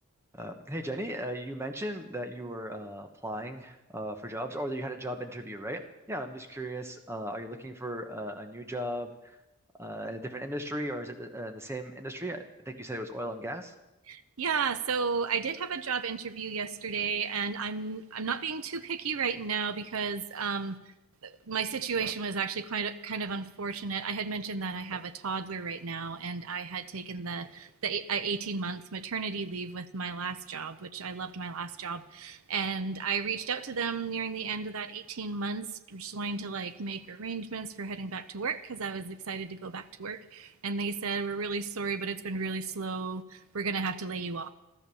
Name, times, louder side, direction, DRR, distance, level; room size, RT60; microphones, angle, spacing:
voice 1, 0.3-9.4 9.8-13.7, equal, 10° right, 6 dB, 1.2 m, -37 dB
voice 2, 14.1-20.8 21.2-44.5, right 5 dB, 75° right, 11 dB, 0.7 m, -33 dB
14.0 x 13.5 x 7.0 m, 0.95 s
head